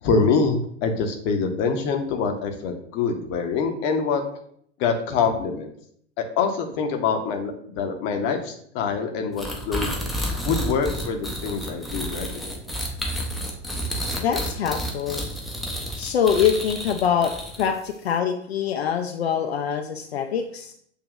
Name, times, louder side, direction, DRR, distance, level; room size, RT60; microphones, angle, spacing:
voice 1, 0.0-4.2 4.8-5.7 6.2-9.9 10.4-12.6, left 5 dB, 30° left, 4 dB, 0.8 m, -25 dB
sound 1, 9.4-17.9, equal, ahead, 0.6 m, -30 dB
voice 2, 14.1-15.3 16.0-20.7, left 8 dB, 60° left, 4 dB, 0.5 m, -24 dB
8.0 x 2.8 x 2.3 m, 0.64 s
figure-of-eight pair, 95°, 35 cm